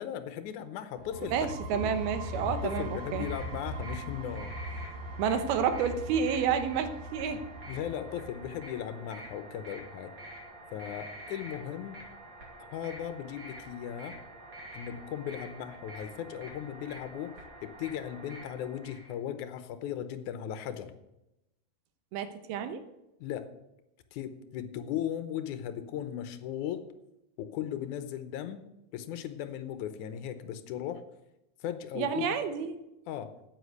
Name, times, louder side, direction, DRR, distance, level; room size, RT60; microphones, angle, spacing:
voice 1, 0.0-1.9 2.3-4.5 7.7-10.1 10.7-12.0 12.6-14.2 14.7-20.9 23.2-23.5 24.1-26.9 27.4-28.6 28.9-31.0 31.6-32.3 33.1-33.3, left 10 dB, 75° left, 11 dB, 1.9 m, -37 dB
sound 1, 1.0-8.6, equal, 65° right, 2.5 m, -40 dB
voice 2, 1.2-3.3 5.2-7.4 22.1-22.8 32.0-32.8, right 7 dB, 90° right, 9 dB, 3.0 m, -30 dB
sound 2, 2.0-19.1, right 1 dB, 35° right, 2.7 m, -48 dB
9.7 x 8.6 x 8.1 m, 0.91 s
omnidirectional pair, 4.3 m